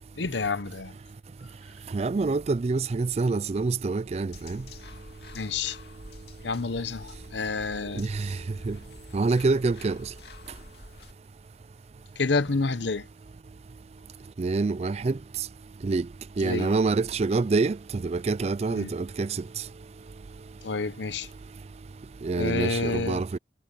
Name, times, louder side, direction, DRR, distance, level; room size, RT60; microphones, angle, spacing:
voice 1, 0.2-0.9 5.3-5.8 6.4-8.0 12.2-13.1 16.4-16.7 18.7-18.9 20.6-21.3 22.4-23.2, left 3 dB, 85° left, 1.0 m, -29 dB
voice 2, 1.9-4.6 7.9-8.4 8.6-8.8 9.1-10.1 14.4-15.2 15.8-16.1 16.4-19.3 22.2-23.4, right 3 dB, 35° right, 0.4 m, -26 dB
sound 1, 4.3-11.1, left 2 dB, 65° left, 2.5 m, -47 dB
head